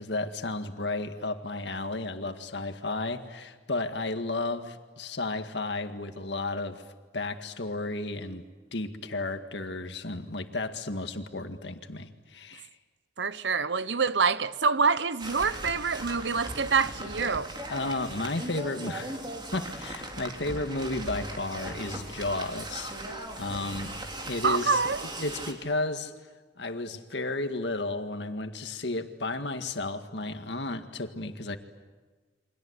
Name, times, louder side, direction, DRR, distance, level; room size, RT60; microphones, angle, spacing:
voice 1, 0.0-6.8 7.1-8.4 8.7-12.7 17.7-19.2 19.5-22.9 23.4-23.9 24.3-24.8 25.2-26.1 26.6-31.6, left 2 dB, 75° left, 2.0 m, -33 dB
voice 2, 13.2-17.5 24.4-25.0, right 5 dB, 80° right, 1.0 m, -26 dB
sound 1, 15.2-25.5, right 1 dB, 25° right, 3.4 m, -38 dB
29.5 x 25.0 x 8.2 m
head